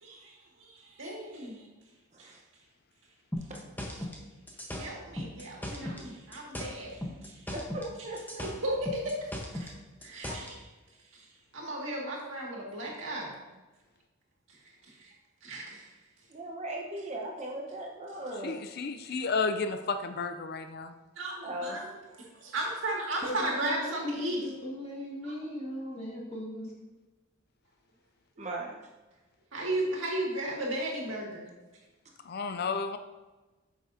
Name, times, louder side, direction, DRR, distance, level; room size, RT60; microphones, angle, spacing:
voice 1, 0.0-1.6 2.2-2.3 4.8-7.4 8.4-9.7 10.0-10.7 11.5-13.4 15.0-15.1 15.4-15.9 19.1-19.2 21.2-21.9 22.2-24.4 25.2-25.3 29.5-31.5, right 1 dB, 70° right, -2 dB, 2.0 m, -35 dB
sound 1, 3.3-6.1 6.3-10.5, left 1 dB, 10° left, 1.0 m, -38 dB
voice 2, 7.5-8.5 16.3-18.6 21.4-21.8 28.4-28.7, right 1 dB, 35° right, 0 dB, 0.9 m, -38 dB
voice 3, 18.4-20.9 32.3-33.0, left 4 dB, 50° left, 8 dB, 0.4 m, -32 dB
voice 4, 23.2-26.7, left 1 dB, 30° left, -4 dB, 2.1 m, -38 dB
9.0 x 6.5 x 2.7 m, 1.2 s
head